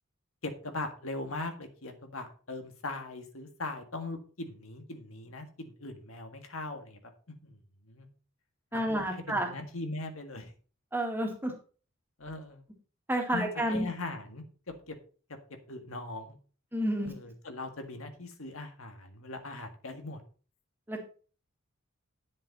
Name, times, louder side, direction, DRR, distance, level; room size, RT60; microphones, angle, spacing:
voice 1, 0.4-7.0 7.3-7.6 7.9-8.1 8.7-10.5 12.2-12.6 13.3-14.4 14.9-15.0 15.7-16.4 17.0-20.2, left 2 dB, 80° left, 6 dB, 1.8 m, -40 dB
voice 2, 8.7-9.5 10.9-11.5 13.1-13.9 16.7-17.1 20.9-21.0, right 1 dB, 10° right, 1 dB, 2.0 m, -30 dB
10.0 x 7.5 x 4.2 m, 0.39 s
head